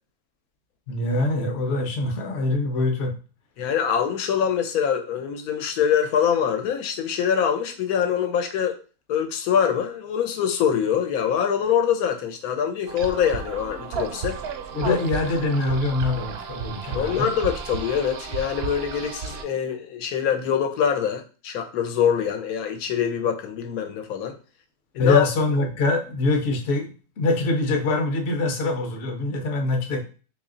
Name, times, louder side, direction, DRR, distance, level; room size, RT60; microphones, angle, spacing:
voice 1, 0.9-3.1 14.7-17.3 25.0-30.0, left 2 dB, 55° left, 4 dB, 0.9 m, -24 dB
voice 2, 3.6-8.8 9.1-14.4 14.8-15.0 16.9-24.3 24.9-25.2, left 8 dB, 85° left, 6 dB, 1.1 m, -24 dB
sound 1, 12.9-19.4, right 5 dB, 70° right, 0.6 m, -33 dB
3.1 x 2.7 x 3.7 m, 0.36 s
omnidirectional pair, 1.5 m